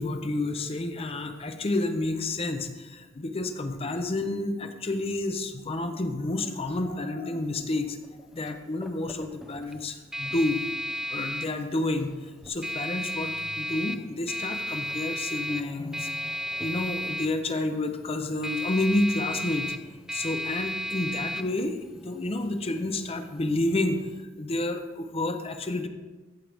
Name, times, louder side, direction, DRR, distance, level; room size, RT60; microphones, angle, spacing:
voice 1, 0.0-8.0 8.3-10.6 11.1-12.1 12.4-16.3 16.6-19.7 20.1-24.0 24.4-25.9, left 2 dB, 30° left, 7 dB, 0.6 m, -30 dB
sound 1, 7.4-24.2, equal, 5° right, 0.4 m, -35 dB
15.0 x 6.3 x 3.5 m, 1.2 s
head